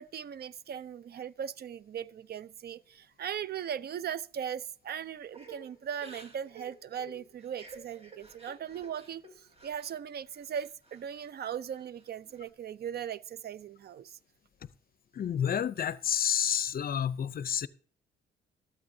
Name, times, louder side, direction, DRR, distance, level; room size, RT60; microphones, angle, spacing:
voice 1, 0.0-14.2, right 8 dB, 55° right, 0.6 m, -39 dB
Crying sobbing / Breathing, 5.3-10.0 10.3-11.3 11.7-12.5, right 3 dB, 30° right, 2.2 m, -52 dB
voice 2, 15.2-17.7, left 9 dB, 50° left, 0.6 m, -29 dB
13.5 x 13.0 x 2.7 m
cardioid pair, 90°, 20 cm